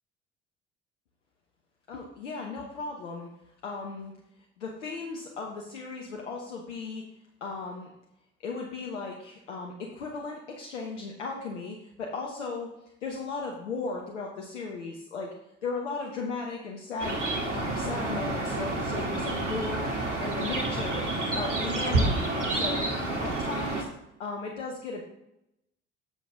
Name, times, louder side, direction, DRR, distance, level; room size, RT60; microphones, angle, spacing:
voice 1, 1.9-3.3 3.6-4.1 4.6-7.0 7.4-7.9 8.4-12.7 13.0-15.3 15.6-17.2 17.5-19.9 20.2-21.0 21.3-23.9 24.2-25.0, left 4 dB, 80° left, 0 dB, 0.9 m, -36 dB
sound 1, 17.0-23.8, right 2 dB, 90° right, 1.2 m, -29 dB
7.6 x 6.6 x 3.7 m, 0.83 s
figure-of-eight pair, 50°, 35 cm